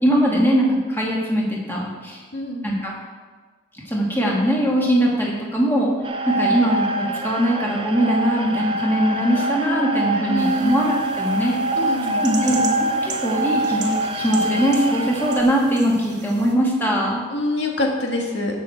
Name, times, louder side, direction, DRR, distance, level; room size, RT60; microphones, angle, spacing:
voice 1, 0.0-2.2 2.6-2.9 3.9-5.9 6.3-11.6 12.2-12.7 13.0-17.2, equal, 10° left, -4 dB, 2.2 m, -21 dB
voice 2, 2.3-2.7 10.3-10.8 11.7-12.2 17.3-18.6, left 1 dB, 65° left, 0 dB, 1.8 m, -25 dB
sound 1, 6.0-15.4, right 1 dB, 25° right, 0.6 m, -25 dB
sound 2, 10.4-16.5, right 6 dB, 60° right, 1.4 m, -37 dB
16.0 x 6.5 x 4.5 m, 1.4 s
head